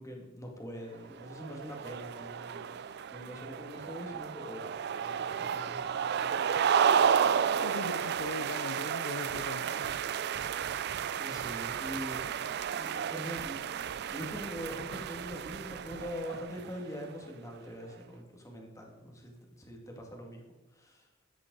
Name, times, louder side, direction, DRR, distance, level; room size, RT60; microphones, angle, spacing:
voice 1, 0.0-6.8 10.7-20.4 20.8-21.0, equal, 15° left, 2.2 m, -44 dB
sound 1, 1.2-16.8, right 7 dB, 55° right, 0.4 m, -32 dB
voice 2, 7.6-9.9, left 4 dB, 80° left, 0.5 m, -40 dB
13.5 x 9.6 x 4.0 m
head